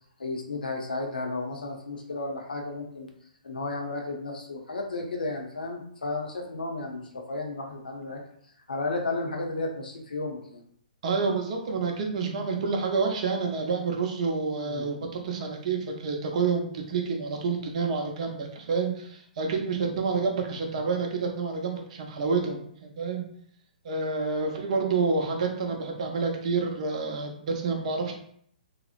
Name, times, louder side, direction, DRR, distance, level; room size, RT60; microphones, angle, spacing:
voice 1, 0.2-3.1 3.4-8.2 8.7-10.6 14.7-14.9, left 2 dB, 85° left, 2 dB, 0.7 m, -33 dB
voice 2, 11.0-15.0 15.2-23.3 23.8-28.1, right 4 dB, 50° right, 2 dB, 0.6 m, -28 dB
2.8 x 2.0 x 2.5 m, 0.64 s
hypercardioid pair, 135°, 5 cm